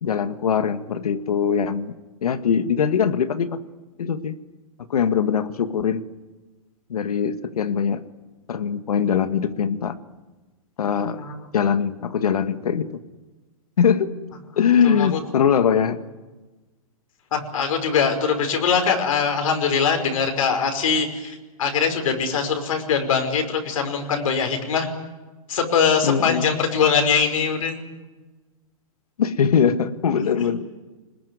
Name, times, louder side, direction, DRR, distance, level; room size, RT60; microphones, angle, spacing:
voice 1, 0.0-3.6 4.0-4.4 4.9-6.1 6.9-8.0 8.5-10.0 10.8-11.2 11.5-13.0 13.8-14.1 14.6-16.0 26.0-26.5 29.2-30.6, left 7 dB, 90° left, 10 dB, 1.8 m, -22 dB
voice 2, 11.2-11.5 14.8-15.2 17.3-24.9 25.5-27.8 30.3-30.5, left 6 dB, 65° left, 4 dB, 5.3 m, -22 dB
25.5 x 20.5 x 9.6 m, 1.2 s
hypercardioid pair, 170°, 19 cm